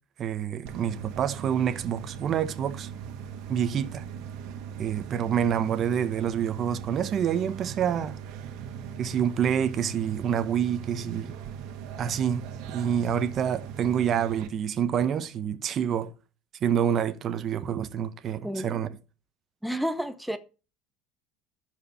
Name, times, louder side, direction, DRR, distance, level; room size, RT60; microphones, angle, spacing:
voice 1, 0.2-2.9 3.5-4.0 4.8-8.2 9.0-11.3 12.0-12.5 12.7-16.1 16.6-18.9, right 8 dB, 40° right, 1.1 m, -27 dB
sound 1, 0.7-14.5, right 8 dB, 70° right, 1.8 m, -39 dB
voice 2, 18.4-18.8 19.6-20.4, equal, ahead, 0.8 m, -30 dB
12.5 x 4.9 x 7.2 m
cardioid pair, 130°, 0 cm